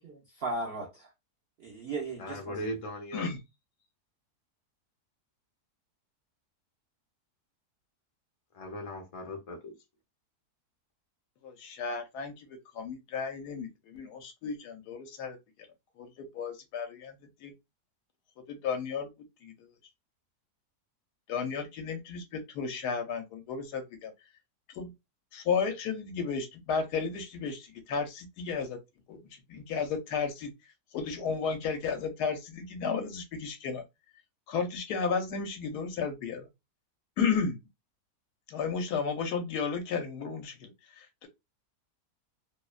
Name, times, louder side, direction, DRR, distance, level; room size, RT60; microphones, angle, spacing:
voice 1, 0.0-1.1 1.6-2.6, right 3 dB, 65° right, 0.6 m, -36 dB
voice 2, 2.2-3.3 8.5-9.7, equal, 45° left, 0.4 m, -38 dB
voice 3, 11.4-12.5 12.7-15.4 16.0-17.5 18.5-19.1 19.4-19.5 21.3-24.1 24.8-24.9 25.3-28.8 29.1-29.2 29.5-30.5 30.9-33.8 34.5-36.5 37.2-37.6 38.5-41.3, left 5 dB, 85° left, 1.2 m, -33 dB
2.9 x 2.1 x 2.3 m
omnidirectional pair, 1.7 m